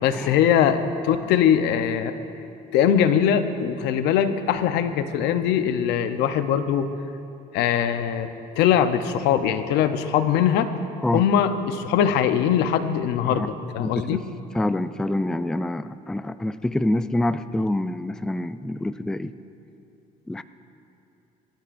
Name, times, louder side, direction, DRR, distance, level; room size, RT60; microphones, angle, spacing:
voice 1, 0.0-2.1 2.7-6.9 7.5-10.7 11.1-14.2, left 9 dB, 90° left, 9 dB, 0.8 m, -21 dB
voice 2, 13.8-14.2 14.5-19.3 20.3-20.4, left 1 dB, 5° left, 12 dB, 0.3 m, -26 dB
26.5 x 13.0 x 2.6 m, 2.8 s
cardioid pair, 110°, 17 cm